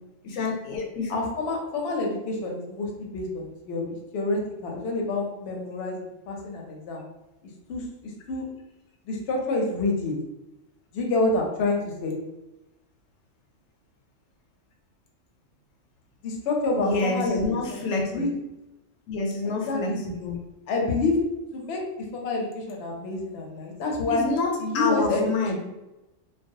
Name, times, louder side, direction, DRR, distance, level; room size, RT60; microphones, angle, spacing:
voice 1, 0.2-1.1 16.8-18.2 19.1-20.4 24.1-25.6, left 3 dB, 85° left, 0 dB, 1.0 m, -28 dB
voice 2, 1.1-3.9 4.1-6.0 6.3-7.0 7.7-7.8 8.3-8.4 9.1-10.1 10.9-12.2 16.2-17.4 18.1-18.3 19.6-20.0 20.7-21.2 21.5-21.8 22.1-24.2 24.6-25.6, left 2 dB, 65° left, 0 dB, 0.8 m, -27 dB
2.3 x 2.2 x 2.6 m, 0.97 s
omnidirectional pair, 1.3 m